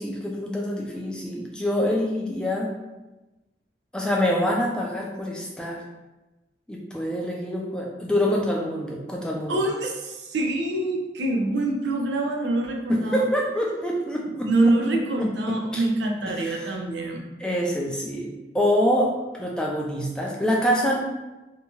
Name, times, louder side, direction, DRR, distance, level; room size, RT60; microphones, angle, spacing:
voice 1, 0.0-2.7 3.9-5.8 6.7-9.6 12.9-14.7 15.2-15.8 16.3-16.8 17.4-18.3 18.5-21.0, equal, 5° left, -2 dB, 0.3 m, -26 dB
voice 2, 9.5-13.3 14.4-17.3, right 2 dB, 85° right, 1 dB, 0.5 m, -25 dB
2.8 x 2.2 x 2.8 m, 1.1 s
head